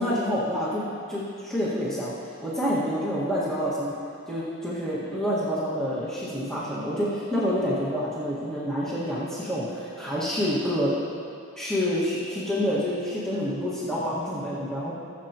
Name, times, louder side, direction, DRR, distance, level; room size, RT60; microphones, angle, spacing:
voice 1, 0.0-2.1 2.4-3.9 4.3-10.9 11.6-14.9, equal, 5° left, -10 dB, 1.7 m, -28 dB
20.5 x 7.3 x 2.9 m, 2.5 s
head